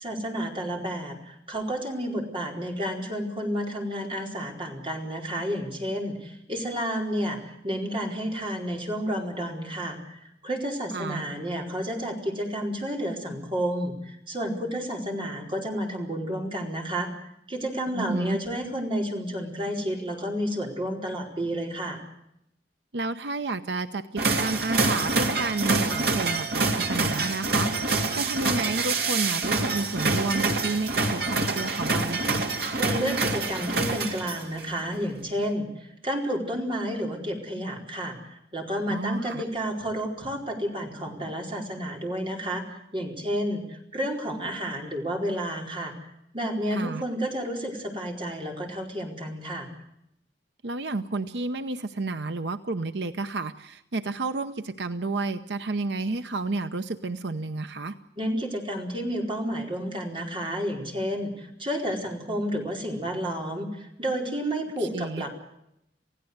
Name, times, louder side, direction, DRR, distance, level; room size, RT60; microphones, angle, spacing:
voice 1, 0.0-17.1 17.5-22.0 32.8-42.6 42.9-45.9 46.3-49.7 58.2-65.4, equal, 30° right, 1 dB, 4.5 m, -31 dB
voice 2, 10.9-11.2 17.9-18.4 22.9-32.4 38.9-39.4 46.7-47.0 50.6-58.0 64.8-65.3, right 3 dB, 80° right, 10 dB, 0.8 m, -31 dB
sound 1, 24.2-34.6, right 3 dB, 60° right, 2.9 m, -26 dB
28.5 x 16.5 x 8.0 m, 0.80 s
head